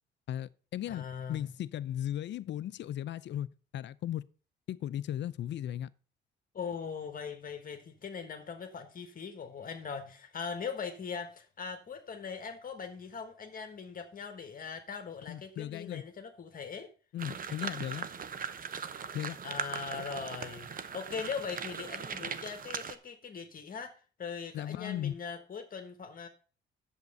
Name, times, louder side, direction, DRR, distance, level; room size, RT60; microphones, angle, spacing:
voice 1, 0.3-4.2 4.7-5.9 15.3-16.0 17.1-18.1 19.1-19.4 24.5-25.1, left 11 dB, 65° left, 0.5 m, -36 dB
voice 2, 0.9-1.5 6.5-16.9 19.4-23.9 24.2-26.3, left 6 dB, 45° left, 1.3 m, -40 dB
sound 1, 17.2-23.0, right 6 dB, 45° right, 0.8 m, -39 dB
8.2 x 7.3 x 5.3 m
cardioid pair, 90°, 20 cm